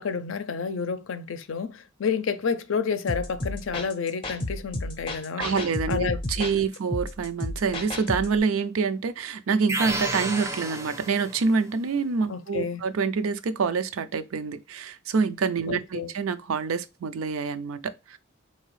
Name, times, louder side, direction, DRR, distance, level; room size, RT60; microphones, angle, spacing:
voice 1, 0.0-5.5 5.9-6.2 12.3-12.8 15.7-16.1, left 5 dB, 65° left, 0.5 m, -30 dB
sound 1, 3.1-8.4, left 1 dB, 25° left, 0.6 m, -33 dB
voice 2, 5.4-18.2, right 5 dB, 80° right, 0.4 m, -27 dB
sound 2, 9.7-11.6, right 1 dB, 15° right, 0.5 m, -31 dB
4.0 x 2.8 x 3.1 m
head